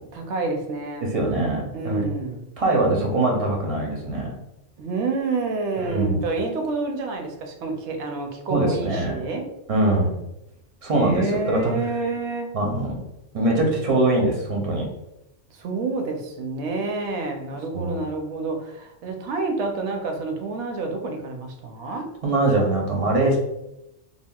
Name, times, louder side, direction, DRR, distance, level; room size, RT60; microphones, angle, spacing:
voice 1, 0.1-1.1 1.7-2.4 4.8-9.5 11.0-12.6 15.5-22.1, right 3 dB, 70° right, 3 dB, 0.8 m, -28 dB
voice 2, 1.0-2.1 2.6-4.3 5.8-6.2 8.5-9.1 9.7-10.2 10.8-11.7 12.5-13.0 13.3-14.9 17.7-18.0 22.2-23.4, right 2 dB, 45° right, -1 dB, 0.5 m, -22 dB
3.5 x 2.1 x 2.2 m, 0.87 s
omnidirectional pair, 1.3 m